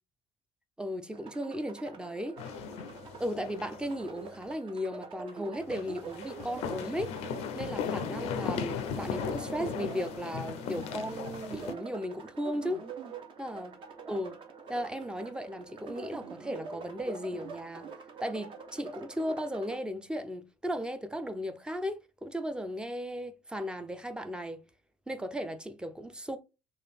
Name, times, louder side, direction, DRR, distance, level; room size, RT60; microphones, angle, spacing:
voice 1, 0.8-2.4 3.2-7.1 7.5-12.9 13.4-13.7 14.1-14.4 14.7-17.9 18.2-24.6 25.1-26.4, equal, 5° right, 0.5 m, -36 dB
sound 1, 1.1-19.8, right 4 dB, 40° right, 0.7 m, -45 dB
sound 2, 2.4-3.9 4.2-4.3 5.7-11.7, left 7 dB, 55° left, 0.4 m, -37 dB
3.1 x 2.4 x 4.2 m
figure-of-eight pair, 55°, 13 cm